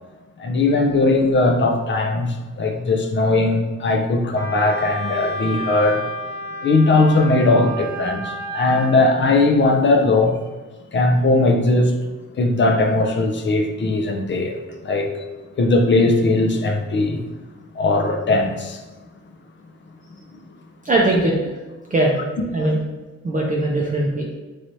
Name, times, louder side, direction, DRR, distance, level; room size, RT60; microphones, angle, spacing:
voice 1, 0.4-6.0 6.6-10.3 10.9-11.9 12.4-14.6 14.8-15.1 15.6-17.2 17.7-18.8, left 2 dB, 40° left, 3 dB, 0.5 m, -18 dB
Wind instrument woodwind instrument, 4.4-9.0, right 1 dB, 70° left, 1.0 m, -31 dB
voice 2, 20.8-21.3 21.9-22.2 22.5-22.8 23.2-24.2, right 1 dB, 30° right, -2 dB, 0.5 m, -19 dB
3.2 x 2.9 x 2.6 m, 1.2 s
cardioid pair, 90°, 29 cm